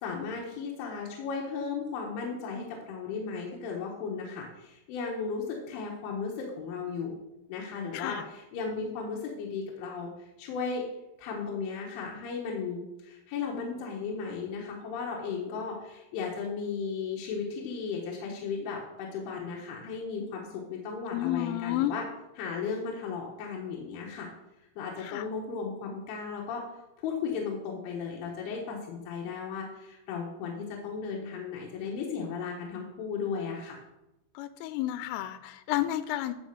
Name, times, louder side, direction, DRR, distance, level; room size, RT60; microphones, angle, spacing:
voice 1, 0.0-7.2 7.5-10.8 11.2-22.1 22.4-24.3 24.8-26.6 27.0-33.8, left 5 dB, 75° left, -2 dB, 3.7 m, -35 dB
voice 2, 21.1-21.9 25.0-25.2 34.4-36.3, left 14 dB, 90° left, 11 dB, 3.2 m, -31 dB
12.5 x 4.3 x 6.7 m, 0.92 s
omnidirectional pair, 5.7 m